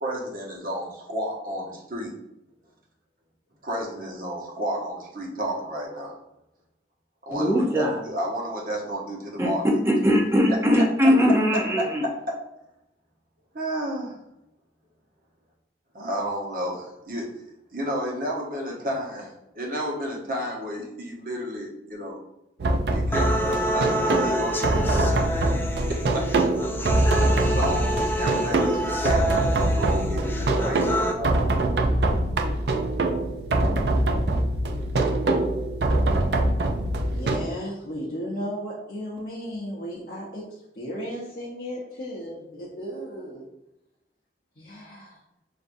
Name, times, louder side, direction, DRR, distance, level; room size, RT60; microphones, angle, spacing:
voice 1, 0.0-2.1 3.6-6.1 7.3-9.6 11.8-12.3 13.5-14.1 15.9-17.3 17.7-22.2 22.9-25.5 25.9-26.3 27.2-31.5, equal, 50° right, -1 dB, 1.0 m, -31 dB
voice 2, 7.3-8.0 9.4-9.5 9.8-12.0, equal, 15° right, -1 dB, 0.7 m, -20 dB
sound 1, 22.6-37.4, right 2 dB, 70° right, 0.4 m, -24 dB
sound 2, 23.1-31.1, equal, 10° left, 0.3 m, -28 dB
voice 3, 37.1-43.4 44.6-45.2, equal, 50° left, -6 dB, 0.8 m, -35 dB
5.9 x 2.6 x 2.6 m, 0.87 s
head